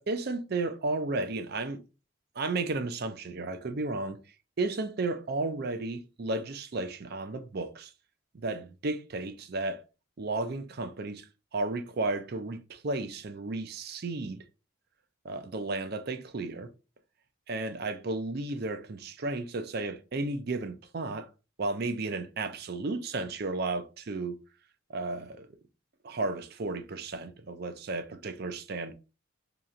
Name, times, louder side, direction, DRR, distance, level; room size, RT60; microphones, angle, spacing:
voice 1, 0.0-1.8 2.4-4.2 4.6-7.9 8.3-9.8 10.2-11.2 11.5-14.4 15.2-16.7 17.5-21.3 21.6-24.4 24.9-25.5 26.0-28.9, right 3 dB, 50° right, 0.5 m, -33 dB
3.0 x 2.9 x 3.7 m
head